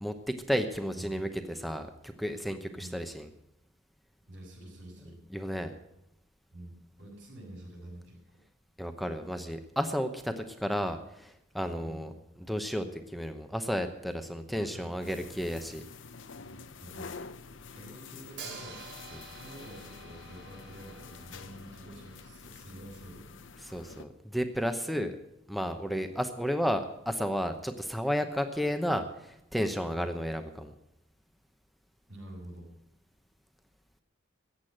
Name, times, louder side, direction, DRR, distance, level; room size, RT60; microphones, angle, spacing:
voice 1, 0.0-3.3 5.3-5.7 8.8-12.1 12.4-15.8 19.1-19.3 23.6-25.1 25.5-30.7, equal, ahead, 7 dB, 0.9 m, -32 dB
voice 2, 0.9-1.3 2.7-3.0 4.3-5.2 6.5-8.2 11.8-12.1 14.5-15.2 16.4-17.2 17.7-18.8 19.4-23.4 25.9-26.1 32.1-32.7, right 1 dB, 90° right, -2 dB, 7.3 m, -48 dB
sound 1, 15.0-24.0, left 4 dB, 85° left, 0.8 m, -48 dB
Hi-hat, 18.4-22.3, right 4 dB, 65° right, 3.0 m, -48 dB
14.5 x 8.4 x 8.7 m, 0.85 s
head